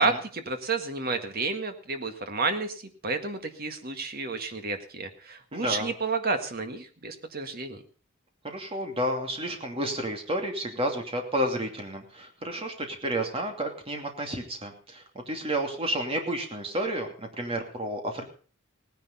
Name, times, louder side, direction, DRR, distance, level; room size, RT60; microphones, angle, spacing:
voice 1, 0.0-7.8, right 3 dB, 45° right, 7 dB, 1.8 m, -30 dB
voice 2, 5.5-5.9 8.4-18.2, right 1 dB, 25° right, 3 dB, 2.7 m, -31 dB
17.5 x 10.5 x 5.6 m, 0.41 s
head